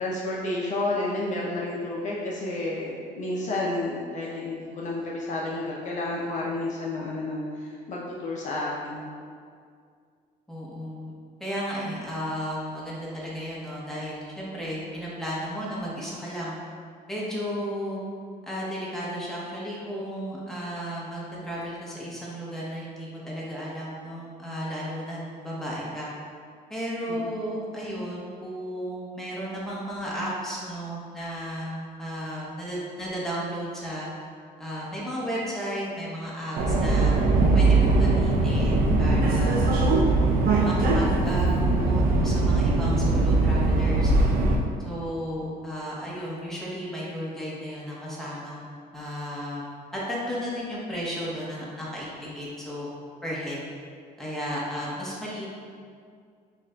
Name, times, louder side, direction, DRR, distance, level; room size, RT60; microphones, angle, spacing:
voice 1, 0.0-9.1 27.1-27.4, left 2 dB, 45° left, -4 dB, 0.5 m, -31 dB
voice 2, 10.5-11.1 11.4-16.5 17.1-18.0 18.4-26.1 26.7-31.7 32.0-34.1 34.6-37.2 37.5-40.0 40.6-44.1 44.8-48.6 48.9-49.6 49.9-52.9 53.2-53.6 54.2-55.5, equal, ahead, -6 dB, 1.0 m, -34 dB
Subway metro underground, 36.6-44.6, right 2 dB, 65° right, 0.5 m, -21 dB
6.7 x 2.5 x 2.2 m, 2.2 s
cardioid pair, 110°, 17 cm